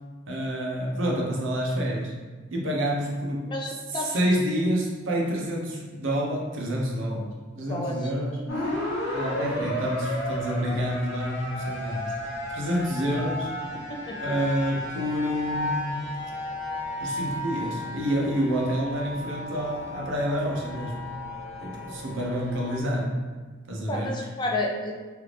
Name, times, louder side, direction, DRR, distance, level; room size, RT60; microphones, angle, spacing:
voice 1, 0.3-2.1 2.5-3.5 3.9-7.3 7.6-8.4 9.1-12.1 12.5-13.5 14.2-16.1 17.0-21.1 21.6-23.2 23.7-24.1, equal, 70° right, -2 dB, 0.7 m, -28 dB
voice 2, 3.5-4.2 7.7-8.0 13.9-14.2 23.9-25.0, left 1 dB, 20° left, -1 dB, 0.3 m, -30 dB
sound 1, 8.5-22.8, left 1 dB, 60° left, 1.1 m, -33 dB
3.4 x 2.5 x 3.2 m, 1.4 s
head